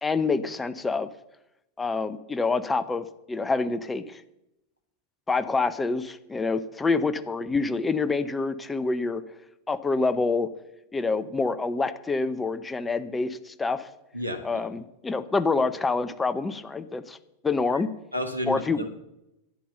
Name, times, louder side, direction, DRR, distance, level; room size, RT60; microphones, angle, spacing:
voice 1, 0.0-1.1 1.8-4.2 5.3-9.2 9.7-10.5 10.9-13.9 14.4-17.2 17.4-17.9 18.5-18.8, left 3 dB, 10° left, 13 dB, 0.6 m, -27 dB
voice 2, 18.1-18.9, left 1 dB, 90° right, 4 dB, 1.5 m, -31 dB
11.5 x 9.3 x 6.8 m, 0.89 s
figure-of-eight pair, 90°, 0 cm